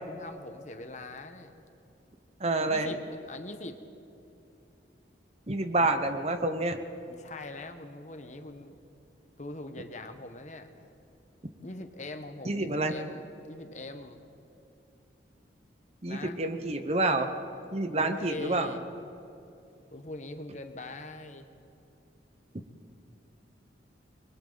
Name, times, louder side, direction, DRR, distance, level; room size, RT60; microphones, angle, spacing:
voice 1, 0.1-1.5 2.7-3.8 7.1-8.7 9.4-10.9 11.6-14.2 16.1-16.4 17.9-19.0 19.9-21.5, left 2 dB, 40° left, 7 dB, 1.3 m, -42 dB
voice 2, 2.4-2.9 5.5-6.8 12.4-12.9 16.0-17.3 17.7-18.7, right 2 dB, 35° right, 8 dB, 1.0 m, -28 dB
29.0 x 22.5 x 4.1 m, 2.8 s
head